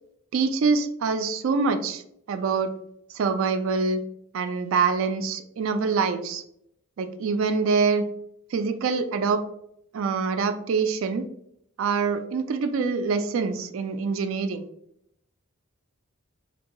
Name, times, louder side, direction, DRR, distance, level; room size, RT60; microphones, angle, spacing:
voice 1, 0.3-2.0 2.3-2.7 3.1-4.0 4.3-6.4 7.0-8.1 8.5-9.4 9.9-11.3 11.8-14.6, right 5 dB, 65° right, 9 dB, 0.3 m, -25 dB
2.8 x 2.6 x 2.9 m, 0.73 s
head